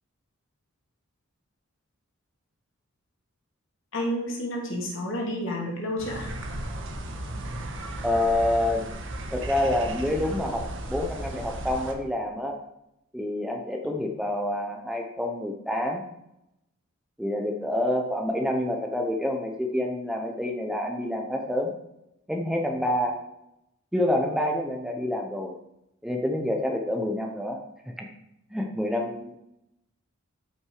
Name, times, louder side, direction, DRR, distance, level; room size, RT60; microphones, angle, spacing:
voice 1, 3.9-6.3, equal, 55° left, -2 dB, 2.7 m, -30 dB
sound 1, 6.0-11.9, right 1 dB, 55° right, 1.5 m, -35 dB
voice 2, 8.0-8.9 9.3-12.6 13.1-16.0 17.2-21.7 22.3-23.2 23.9-25.6 26.0-28.1 28.5-29.4, left 1 dB, 5° right, 2 dB, 0.8 m, -27 dB
12.5 x 6.0 x 4.9 m, 0.85 s
head